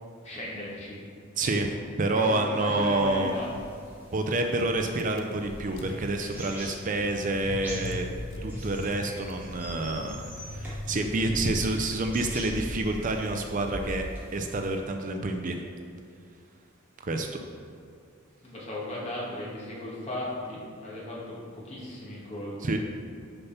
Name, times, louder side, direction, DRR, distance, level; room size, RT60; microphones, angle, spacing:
voice 1, 0.2-1.0 1.4-1.5 2.1-3.5 18.4-22.6, left 1 dB, 30° left, -6 dB, 2.1 m, -36 dB
voice 2, 1.4-1.7 2.0-3.3 4.1-8.1 8.4-15.6 17.0-17.4 22.6-22.8, right 2 dB, 40° right, 4 dB, 0.5 m, -28 dB
sound 1, 2.8-14.8, equal, 10° right, 1.9 m, -42 dB
Car / Engine, 5.0-13.3, left 2 dB, 70° left, 0.6 m, -42 dB
6.8 x 5.7 x 5.7 m, 2.4 s
head